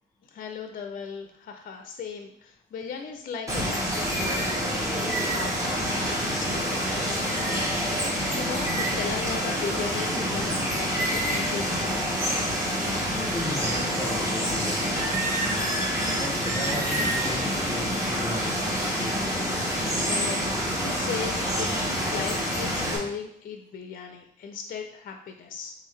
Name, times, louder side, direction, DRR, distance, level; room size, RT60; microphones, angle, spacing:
voice 1, 0.3-11.9 20.0-25.7, left 6 dB, 45° left, 5 dB, 0.4 m, -37 dB
Water, 3.5-23.0, equal, 15° right, 1.1 m, -27 dB
voice 2, 13.3-15.3 16.1-18.5 19.0-19.5, left 1 dB, 20° left, 1 dB, 1.0 m, -35 dB
3.6 x 3.3 x 3.2 m, 0.73 s
cardioid pair, 90°, 20 cm